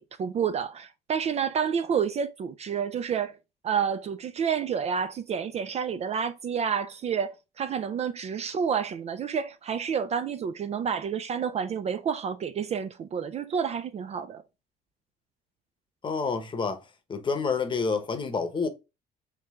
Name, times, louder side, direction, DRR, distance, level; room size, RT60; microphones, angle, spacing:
voice 1, 0.0-3.4 3.6-14.4, right 7 dB, 40° right, 0.4 m, -29 dB
voice 2, 16.0-16.8 17.1-18.7, left 4 dB, 30° left, 0.8 m, -28 dB
3.2 x 3.2 x 3.5 m
cardioid pair, 110°, 17 cm